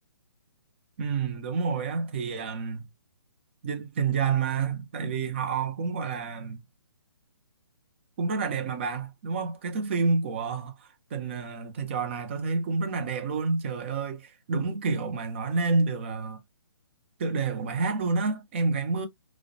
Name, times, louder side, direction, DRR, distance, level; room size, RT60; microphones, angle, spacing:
voice 1, 1.0-2.8 3.6-6.6 8.2-16.4 17.2-19.1, right 4 dB, 25° right, 0.4 m, -29 dB
2.4 x 2.0 x 2.5 m
hypercardioid pair, 160°, 14 cm